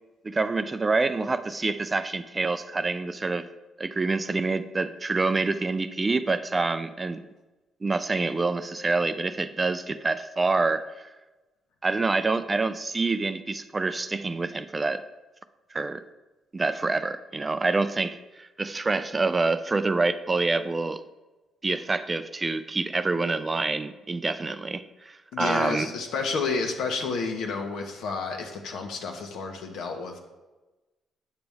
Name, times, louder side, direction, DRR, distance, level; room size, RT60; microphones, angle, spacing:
voice 1, 0.2-3.5 3.8-7.2 7.8-11.1 11.8-15.0 15.7-16.0 16.5-21.0 21.6-25.9, right 3 dB, 20° right, 11 dB, 0.3 m, -27 dB
voice 2, 25.3-30.2, left 4 dB, 80° left, 3 dB, 1.2 m, -30 dB
8.8 x 7.0 x 3.5 m, 1.1 s
cardioid pair, 140°, 0 cm